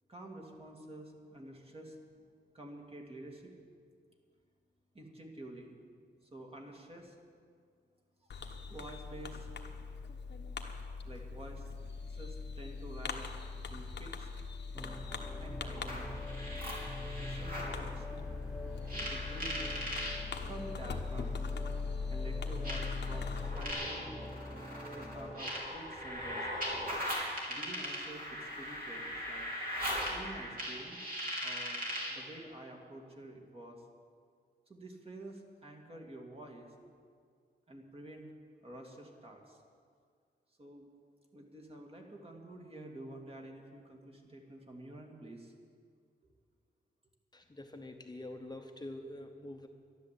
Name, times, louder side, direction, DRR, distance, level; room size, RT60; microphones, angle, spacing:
voice 1, 0.1-2.0 2.5-3.5 4.9-5.8 6.2-7.2 8.2-8.3 8.7-9.5 11.0-11.7 12.1-13.4 13.7-14.3 15.4-16.1 17.2-18.4 18.9-19.6 20.4-21.4 22.1-24.1 24.9-26.6 27.5-29.5 30.1-31.0 31.4-31.8 32.1-33.8 34.7-36.7 37.7-38.3 38.6-39.6 40.6-40.9 41.3-45.5, right 1 dB, 35° right, 1 dB, 2.2 m, -49 dB
Fireworks, 8.3-23.7, left 5 dB, 85° left, 1.1 m, -41 dB
sound 1, 14.7-25.4, left 1 dB, 5° right, 1.4 m, -45 dB
sound 2, 15.7-17.8 18.9-20.2 21.3-21.4 22.6-32.2, equal, 55° right, 3.6 m, -39 dB
voice 2, 47.3-49.7, left 1 dB, 25° left, 4 dB, 0.9 m, -46 dB
12.5 x 11.5 x 8.3 m, 2.1 s
wide cardioid pair, 110°, 18 cm